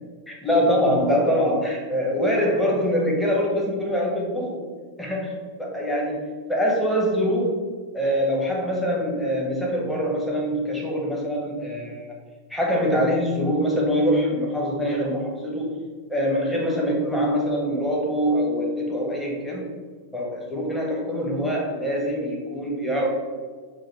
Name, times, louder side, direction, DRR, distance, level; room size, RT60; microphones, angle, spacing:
voice 1, 0.3-4.6 5.0-7.6 7.9-12.1 12.5-15.8 16.1-19.6 20.1-23.1, equal, 5° left, -3 dB, 1.1 m, -24 dB
6.2 x 2.6 x 3.1 m, 1.5 s
figure-of-eight pair, 90°, 0 cm